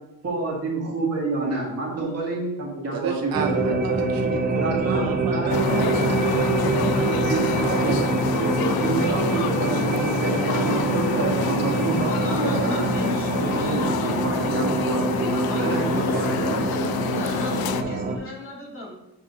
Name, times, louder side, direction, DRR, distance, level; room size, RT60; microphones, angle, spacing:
voice 1, 0.2-4.0 4.6-5.9 6.7-8.0 8.6-12.9 13.4-15.3 15.6-16.7, right 3 dB, 40° right, -3 dB, 2.0 m, -28 dB
voice 2, 2.9-7.1 7.8-9.5, right 6 dB, 65° right, 5 dB, 0.6 m, -33 dB
sound 1, 3.3-18.2, right 3 dB, 25° right, 0.7 m, -25 dB
sound 2, 5.5-17.8, left 9 dB, 70° left, 0.5 m, -28 dB
voice 3, 11.9-14.3 15.3-16.1 17.1-18.9, left 1 dB, 35° left, -4 dB, 2.2 m, -37 dB
7.4 x 4.7 x 2.9 m, 0.91 s
cardioid pair, 110°, 38 cm